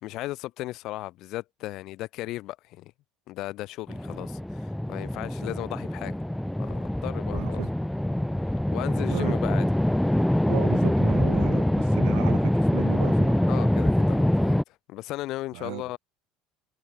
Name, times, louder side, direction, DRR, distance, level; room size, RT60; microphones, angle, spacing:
voice 1, 0.0-2.9 3.3-6.2 6.6-7.6 8.7-9.7 13.5-16.0, left 17 dB, 65° left, 1.8 m, -36 dB
sound 1, 3.9-14.6, left 1 dB, 5° left, 1.4 m, -24 dB
voice 2, 7.3-7.7 9.1-9.6 10.4-13.5 15.5-15.8, right 40 dB or more, 75° right, 2.1 m, -35 dB
supercardioid pair, 90°, 0 cm